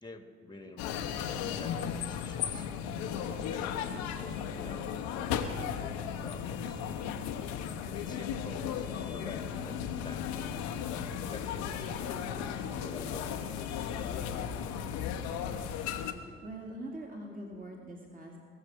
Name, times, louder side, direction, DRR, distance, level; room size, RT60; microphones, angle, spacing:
voice 1, 0.0-2.7 3.4-5.6 6.2-6.8 7.9-10.5 11.3-13.6, left 2 dB, 15° left, 7 dB, 1.4 m, -48 dB
sound 1, 0.8-16.1, left 8 dB, 65° left, 0.9 m, -35 dB
voice 2, 16.4-18.4, right 1 dB, 25° right, 0 dB, 2.3 m, -43 dB
20.5 x 7.2 x 7.7 m, 2.1 s
figure-of-eight pair, 40°, 31 cm